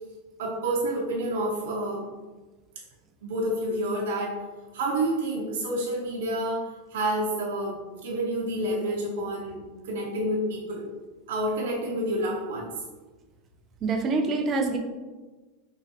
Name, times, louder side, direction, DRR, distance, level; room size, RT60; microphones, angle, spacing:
voice 1, 0.4-2.1 3.2-4.4 4.7-6.6 6.9-10.9 11.3-12.7, right 1 dB, 80° right, -3 dB, 0.6 m, -29 dB
voice 2, 13.8-14.8, right 3 dB, 20° right, 4 dB, 0.4 m, -25 dB
3.4 x 3.0 x 2.8 m, 1.2 s
supercardioid pair, 170°, 0 cm